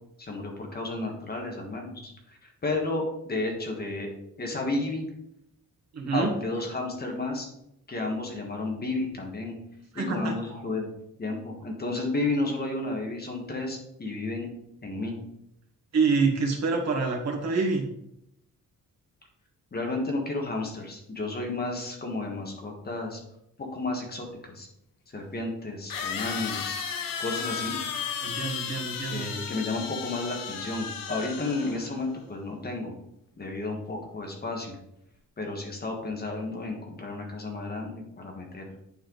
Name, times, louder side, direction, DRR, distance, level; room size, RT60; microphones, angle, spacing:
voice 1, 0.2-5.1 6.1-7.5 7.9-9.6 9.9-10.9 11.2-14.5 14.8-15.2 19.7-23.2 23.6-24.7 25.1-26.8 27.2-27.8 29.1-32.9 33.4-34.7 35.4-38.6, left 2 dB, 30° left, 1 dB, 1.5 m, -32 dB
voice 2, 5.9-6.3 9.9-10.6 15.9-17.8 28.2-29.2, right 4 dB, 50° right, 1 dB, 1.6 m, -27 dB
sound 1, 24.3-24.4 25.9-32.0, left 7 dB, 75° left, 0.9 m, -34 dB
8.8 x 4.4 x 3.9 m, 0.78 s
wide cardioid pair, 180°, 34 cm